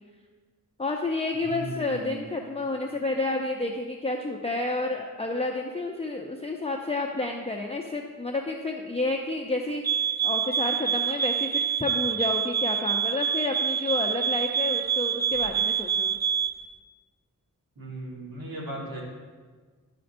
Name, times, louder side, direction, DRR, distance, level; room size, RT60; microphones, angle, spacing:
voice 1, 0.8-16.2, left 2 dB, 20° left, 1 dB, 0.6 m, -30 dB
voice 2, 1.4-2.3 17.8-19.0, right 2 dB, 85° right, -3 dB, 1.6 m, -37 dB
sound 1, 9.8-16.6, right 8 dB, 30° right, 0.4 m, -26 dB
12.5 x 5.1 x 2.6 m, 1.5 s
wide cardioid pair, 50°, 35 cm